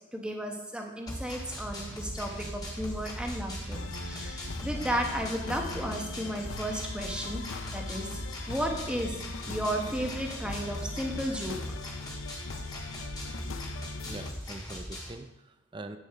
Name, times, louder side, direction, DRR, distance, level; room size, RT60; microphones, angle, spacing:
voice 1, 0.1-8.1 8.5-9.2 9.5-11.6, equal, 5° right, 1 dB, 1.0 m, -34 dB
sound 1, 1.1-15.1, equal, 20° left, 1.5 m, -39 dB
sound 2, 1.6-7.5, right 2 dB, 65° right, 0.6 m, -48 dB
sound 3, 3.7-14.3, left 5 dB, 85° left, 0.5 m, -41 dB
voice 2, 14.0-16.0, right 2 dB, 25° right, 9 dB, 0.4 m, -43 dB
8.6 x 6.6 x 4.7 m, 1.0 s
head